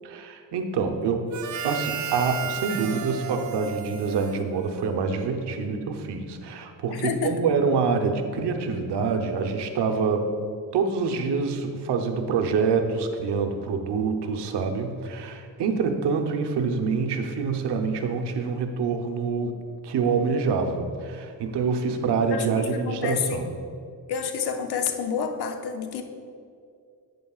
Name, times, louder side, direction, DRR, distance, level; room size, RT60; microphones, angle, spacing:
voice 1, 0.0-1.3 1.6-10.3 10.7-19.5 19.8-23.5, right 5 dB, 70° right, 5 dB, 0.9 m, -26 dB
Harmonica, 1.3-5.1, right 8 dB, 45° right, 0.6 m, -34 dB
voice 2, 6.9-7.5 22.3-22.5 22.7-23.4 24.1-26.0, left 6 dB, 65° left, 6 dB, 0.8 m, -29 dB
9.3 x 8.3 x 2.4 m, 2.3 s
cardioid pair, 100°, 42 cm